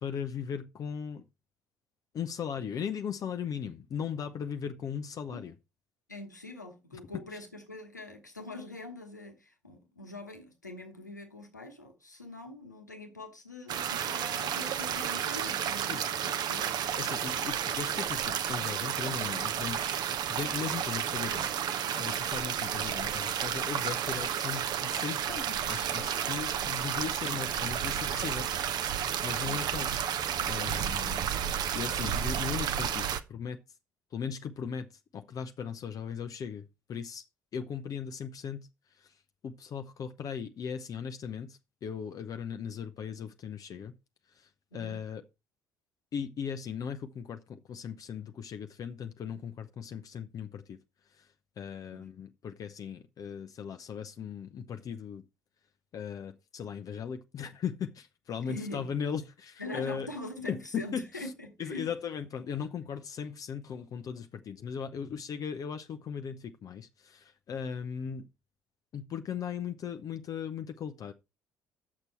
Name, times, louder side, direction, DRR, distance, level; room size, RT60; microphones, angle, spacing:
voice 1, 0.0-1.2 2.1-5.5 7.1-7.4 15.9-16.0 17.0-19.8 20.3-28.9 29.2-30.0 30.5-33.6 34.1-34.9 35.1-37.2 37.5-43.9 44.3-45.2 46.1-50.8 51.1-51.3 51.6-55.2 55.9-60.1 60.5-61.3 61.6-68.3 68.9-71.1, left 7 dB, 40° left, 0.7 m, -38 dB
voice 2, 6.1-16.8 29.3-29.6 44.7-45.0 51.9-52.1 58.5-58.9 59.6-61.9, left 2 dB, 90° left, 1.1 m, -43 dB
sound 1, 13.7-33.2, right 9 dB, 50° right, 0.7 m, -32 dB
8.4 x 6.7 x 4.4 m
figure-of-eight pair, 55°, 9 cm